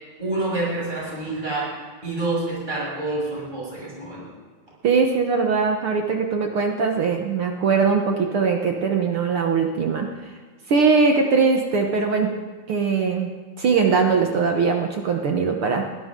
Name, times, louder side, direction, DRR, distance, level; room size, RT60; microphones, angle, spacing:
voice 1, 0.2-4.2, right 2 dB, 15° right, -6 dB, 7.0 m, -27 dB
voice 2, 4.8-10.1 10.7-12.3 12.7-13.3 13.6-15.8, right 5 dB, 55° right, 3 dB, 1.7 m, -21 dB
22.5 x 17.0 x 3.8 m, 1.5 s
omnidirectional pair, 3.4 m